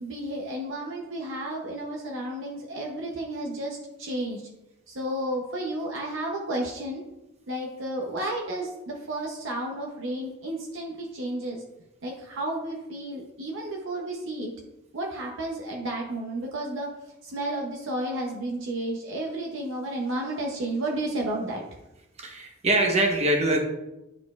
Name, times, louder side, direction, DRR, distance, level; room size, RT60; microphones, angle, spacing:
voice 1, 0.0-4.4 4.9-7.0 7.5-11.6 12.0-14.5 14.9-16.9 17.2-21.6, right 1 dB, 65° right, -1 dB, 0.8 m, -32 dB
voice 2, 22.2-23.6, right 2 dB, 35° right, 1 dB, 1.0 m, -23 dB
9.7 x 4.3 x 2.4 m, 0.94 s
head